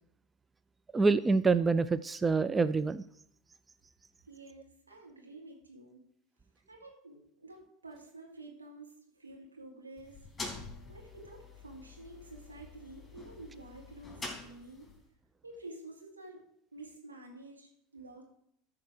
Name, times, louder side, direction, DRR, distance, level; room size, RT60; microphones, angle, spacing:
voice 1, 0.9-3.0, right 4 dB, 20° right, 15 dB, 0.4 m, -26 dB
voice 2, 4.3-6.0 6.7-10.3 10.9-14.9 15.4-16.4 16.7-18.2, right 2 dB, 85° right, -1 dB, 2.5 m, -50 dB
sound 1, 10.0-15.1, left 3 dB, 15° left, 3.3 m, -46 dB
13.5 x 4.9 x 6.4 m, 0.72 s
figure-of-eight pair, 75°, 0 cm